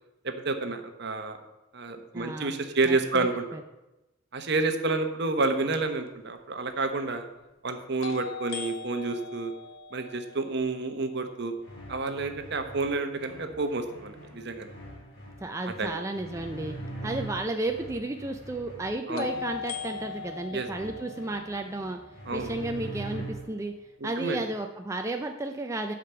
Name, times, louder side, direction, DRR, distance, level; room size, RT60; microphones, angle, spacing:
voice 1, 0.2-1.4 1.7-3.4 4.3-7.2 7.6-9.5 9.9-11.5 11.9-14.7 15.6-16.0 19.1-19.3 20.5-20.7 22.3-22.5 24.0-24.4, right 3 dB, 55° right, 7 dB, 1.0 m, -29 dB
voice 2, 2.1-2.5 2.9-3.3 3.5-3.6 15.4-16.8 17.0-22.0 22.3-23.7 24.0-25.9, right 2 dB, 15° right, 4 dB, 0.4 m, -33 dB
sound 1, 6.1-6.2 8.0-11.9 19.2-23.2, left 6 dB, 85° left, 0.9 m, -41 dB
sound 2, 11.6-23.7, right 1 dB, 55° left, 2.9 m, -43 dB
10.0 x 5.1 x 6.9 m, 1.0 s
head